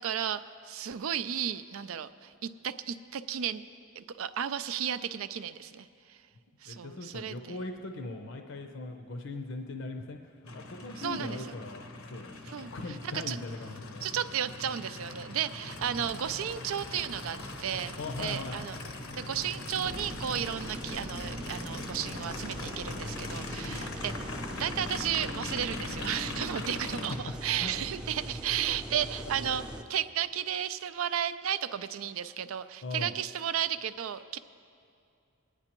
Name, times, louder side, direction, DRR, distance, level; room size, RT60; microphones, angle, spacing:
voice 1, 0.0-3.6 4.0-6.2 6.6-7.6 11.0-11.4 12.5-12.7 13.0-13.4 14.0-18.8 19.2-24.3 24.6-34.4, right 9 dB, 70° right, 13 dB, 0.4 m, -34 dB
voice 2, 6.7-10.2 10.5-12.4 12.6-14.0 18.0-18.6 23.6-23.9 27.1-27.3 27.6-27.7 32.8-33.2, left 2 dB, 60° left, 4 dB, 0.6 m, -39 dB
Aircraft, 10.5-27.2, left 2 dB, 90° left, 0.9 m, -41 dB
sound 1, 15.7-27.1, right 1 dB, 35° right, 0.8 m, -48 dB
sound 2, 19.8-29.8, right 1 dB, 5° right, 0.5 m, -42 dB
21.0 x 9.8 x 3.0 m, 2.5 s
head